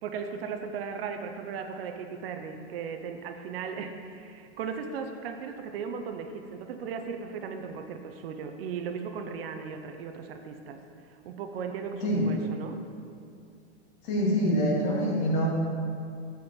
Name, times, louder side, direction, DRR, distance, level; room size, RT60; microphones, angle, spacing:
voice 1, 0.0-10.8 11.1-12.8, right 6 dB, 55° right, 6 dB, 0.7 m, -37 dB
voice 2, 12.0-12.3 14.0-15.5, equal, 45° left, -2 dB, 1.7 m, -25 dB
7.6 x 5.4 x 4.3 m, 2.4 s
hypercardioid pair, 140°, 35 cm